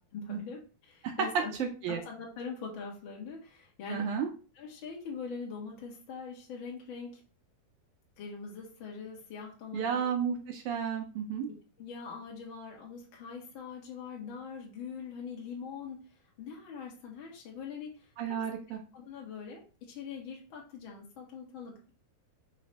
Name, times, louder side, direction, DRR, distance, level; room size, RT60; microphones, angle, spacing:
voice 1, 0.1-1.5 1.9-4.1 4.5-7.2 8.2-10.1 11.8-18.4 18.7-21.9, left 5 dB, 55° left, -2 dB, 1.4 m, -43 dB
voice 2, 1.6-2.0 3.9-4.3 9.7-11.5 18.2-18.8, right 7 dB, 75° right, 3 dB, 1.8 m, -32 dB
5.8 x 3.2 x 5.3 m, 0.36 s
omnidirectional pair, 4.2 m